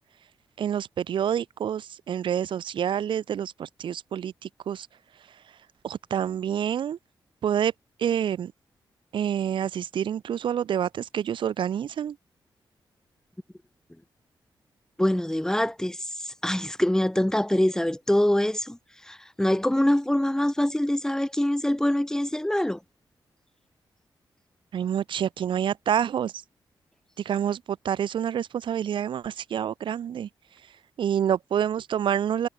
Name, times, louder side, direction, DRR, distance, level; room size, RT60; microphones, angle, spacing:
voice 1, 0.6-4.9 5.8-7.0 7.4-7.7 8.0-8.5 9.1-12.1 24.7-26.3 27.2-30.3 31.0-32.5, right 9 dB, 85° right, 3.3 m, -27 dB
voice 2, 15.0-16.0 16.2-18.8 19.1-22.8, left 1 dB, 5° left, 1.7 m, -24 dB
cardioid pair, 90°, 8 cm